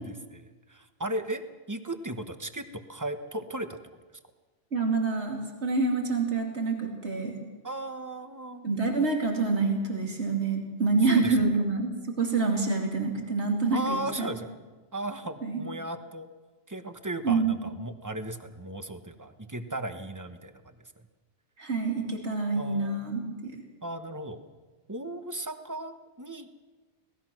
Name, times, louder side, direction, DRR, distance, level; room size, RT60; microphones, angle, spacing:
voice 1, 0.0-1.4 1.7-3.8 7.6-8.7 11.0-11.5 13.7-14.5 14.9-16.3 16.7-21.0 22.5-23.1 23.8-24.4 24.9-26.7, right 1 dB, 15° right, 8 dB, 1.1 m, -36 dB
voice 2, 4.7-7.3 8.6-14.3 15.4-15.6 17.2-17.4 21.6-23.5, right 3 dB, 85° right, 2 dB, 3.0 m, -27 dB
25.0 x 18.5 x 6.2 m, 1.3 s
omnidirectional pair, 1.1 m